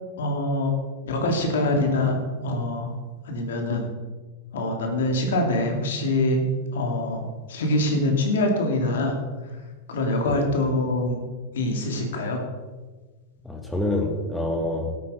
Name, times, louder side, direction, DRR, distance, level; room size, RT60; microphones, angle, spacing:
voice 1, 0.2-0.7 1.0-2.2 2.4-2.9 3.2-3.9 4.5-6.4 6.7-9.2 9.9-11.2 11.5-12.4, left 1 dB, 80° left, 2 dB, 2.8 m, -24 dB
voice 2, 13.4-15.0, left 1 dB, 10° left, 4 dB, 1.3 m, -27 dB
12.5 x 8.6 x 5.1 m, 1.3 s
hypercardioid pair, 125°, 0 cm